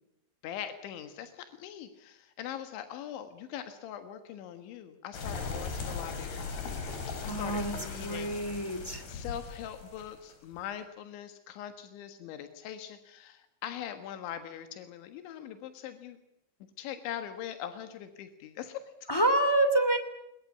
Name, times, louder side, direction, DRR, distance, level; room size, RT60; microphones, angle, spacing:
voice 1, 0.4-6.4 7.2-8.3 8.7-8.8 9.1-16.2 16.8-19.1, left 10 dB, 85° left, 8 dB, 3.9 m, -42 dB
sound 1, 5.1-10.6, left 4 dB, 60° left, 5.8 m, -38 dB
voice 2, 7.3-7.7 8.0-9.0 19.1-20.0, right 1 dB, 15° left, 6 dB, 0.9 m, -27 dB
23.0 x 21.5 x 8.4 m, 0.81 s
omnidirectional pair, 5.2 m